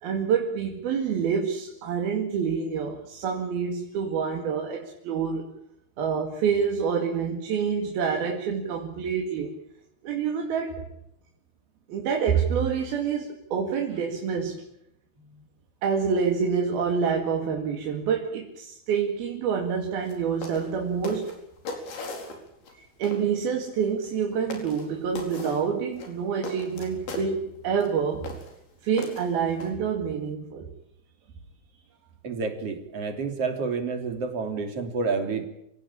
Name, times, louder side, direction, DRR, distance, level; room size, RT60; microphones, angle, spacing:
voice 1, 0.0-5.5 6.0-9.5 10.0-10.9 11.9-14.6 15.8-21.4 22.8-28.3 28.8-30.7, right 6 dB, 70° right, 2 dB, 4.0 m, -27 dB
sound 1, 20.0-20.2 20.4-20.7 21.0-22.7 23.0-23.3 24.0-24.2 24.5-24.9 25.2-25.6 26.0-27.3 27.8-27.9 28.2-28.6 29.0-29.7, left 2 dB, 75° left, 6.5 m, -38 dB
voice 2, 32.2-35.4, right 4 dB, 40° right, 5 dB, 3.8 m, -29 dB
28.5 x 17.0 x 8.8 m, 0.80 s
omnidirectional pair, 4.5 m